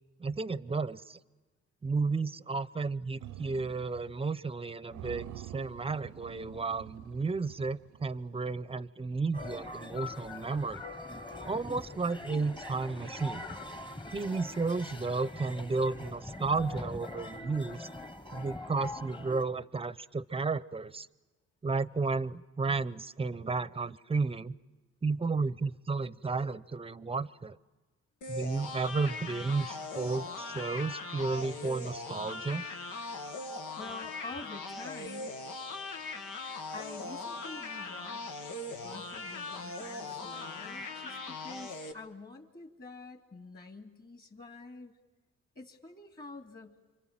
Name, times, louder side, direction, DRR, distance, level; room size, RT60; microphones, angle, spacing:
voice 1, 0.2-1.2 1.8-10.8 11.4-13.4 14.1-17.9 18.3-21.1 21.6-24.6 25.0-27.6 28.3-32.6, right 4 dB, 20° right, 17 dB, 0.8 m, -33 dB
sound 1, 3.2-4.2 4.5-4.6 4.9-8.3, right 13 dB, 75° right, 0.8 m, -47 dB
sound 2, 9.3-19.4, left 2 dB, 15° left, 1.5 m, -43 dB
sound 3, 28.2-41.9, left 3 dB, 85° left, 2.2 m, -40 dB
voice 2, 33.8-35.3 36.7-38.4 38.7-44.9 45.5-46.8, left 3 dB, 30° left, 5 dB, 2.8 m, -47 dB
28.0 x 25.0 x 7.5 m, 1.2 s
cardioid pair, 90°, 30 cm